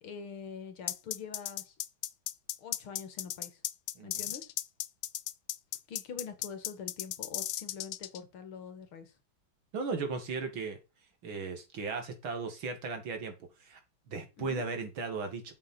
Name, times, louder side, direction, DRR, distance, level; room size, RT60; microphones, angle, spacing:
voice 1, 0.0-1.7 2.6-3.6 4.0-4.5 5.9-9.1 14.4-14.6, left 6 dB, 85° left, 2.6 m, -44 dB
sound 1, 0.9-8.2, left 13 dB, 65° left, 1.0 m, -35 dB
voice 2, 9.7-10.8 11.2-13.3 13.6-13.8 14.1-15.5, right 4 dB, 70° right, 3.0 m, -36 dB
7.7 x 7.7 x 4.5 m
omnidirectional pair, 2.3 m